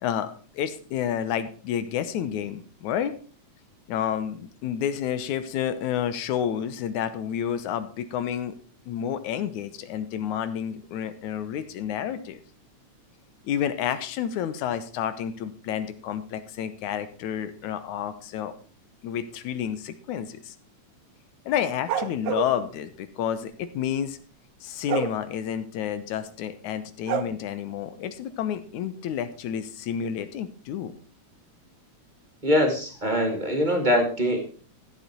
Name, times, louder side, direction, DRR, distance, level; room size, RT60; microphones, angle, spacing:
voice 1, 0.0-3.1 3.9-8.6 8.9-12.4 13.4-18.5 19.0-20.5 21.5-24.2 24.6-31.0, left 9 dB, 85° left, 12 dB, 2.5 m, -30 dB
sound 1, 21.9-22.5 24.9-25.1 27.1-27.2, right 8 dB, 85° right, 2.4 m, -27 dB
voice 2, 32.4-34.4, equal, 15° right, 4 dB, 2.1 m, -23 dB
14.5 x 8.3 x 4.4 m, 0.39 s
omnidirectional pair, 3.3 m